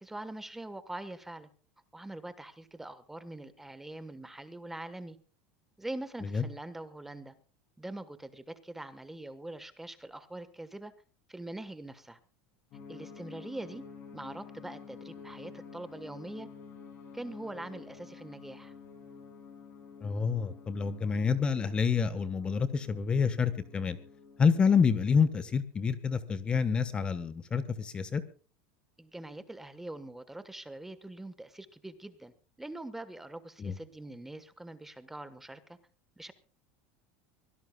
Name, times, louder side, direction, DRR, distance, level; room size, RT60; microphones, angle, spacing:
voice 1, 0.0-1.5 1.9-5.2 5.8-7.3 7.8-10.9 11.3-12.2 12.9-13.8 14.1-16.5 17.1-18.7 29.0-32.3 32.6-35.8 36.2-36.3, right 1 dB, 5° right, 12 dB, 1.3 m, -43 dB
sound 1, 12.7-25.0, left 5 dB, 40° left, 7.3 m, -50 dB
voice 2, 20.0-24.0 24.4-28.2 33.6-33.7, left 6 dB, 20° left, 13 dB, 1.2 m, -28 dB
24.5 x 17.0 x 2.3 m, 0.38 s
supercardioid pair, 155°, 5 cm